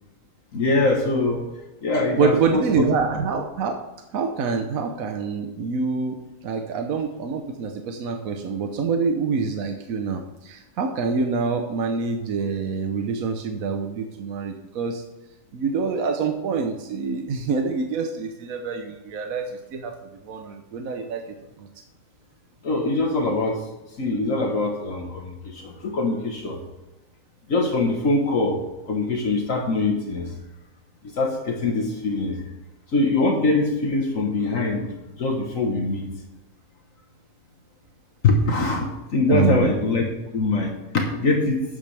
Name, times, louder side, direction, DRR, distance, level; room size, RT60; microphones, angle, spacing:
voice 1, 0.5-1.4 1.8-2.9 22.6-23.7 24.0-26.6 27.5-30.3 31.0-32.4 32.9-34.9 35.2-36.1 38.2-40.1 40.3-41.6, left 2 dB, 65° left, 1 dB, 1.7 m, -23 dB
voice 2, 2.2-3.8 4.1-6.2 6.4-15.0 15.5-21.2 21.6-21.7 39.3-39.7, right 5 dB, 75° right, 5 dB, 1.3 m, -26 dB
13.0 x 9.0 x 3.4 m, 1.0 s
omnidirectional pair, 1.5 m